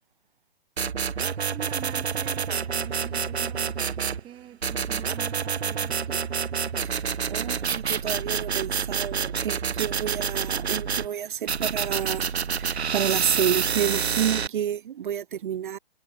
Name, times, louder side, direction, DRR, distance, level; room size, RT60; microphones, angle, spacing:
sound 1, 0.8-4.2 4.6-11.1 11.5-14.5, right 6 dB, 85° right, 0.9 m, -28 dB
voice 1, 1.5-3.7 4.2-6.3, right 12 dB, 15° right, 3.1 m, -44 dB
voice 2, 6.8-15.8, right 9 dB, 55° right, 0.5 m, -30 dB
figure-of-eight pair, 135°, 31 cm